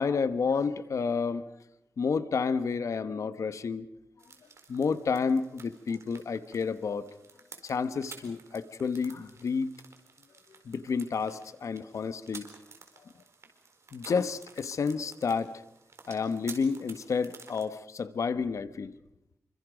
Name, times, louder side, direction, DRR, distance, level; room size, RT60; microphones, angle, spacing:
voice 1, 0.0-1.5 2.0-3.9 4.7-7.1 7.6-9.7 10.5-12.5 13.0-13.1 13.9-15.5 16.1-18.9, left 5 dB, 75° left, 12 dB, 1.2 m, -30 dB
sound 1, 4.2-17.7, right 4 dB, 60° right, 4.2 m, -52 dB
29.0 x 25.0 x 5.2 m, 0.82 s
wide cardioid pair, 145°, 5 cm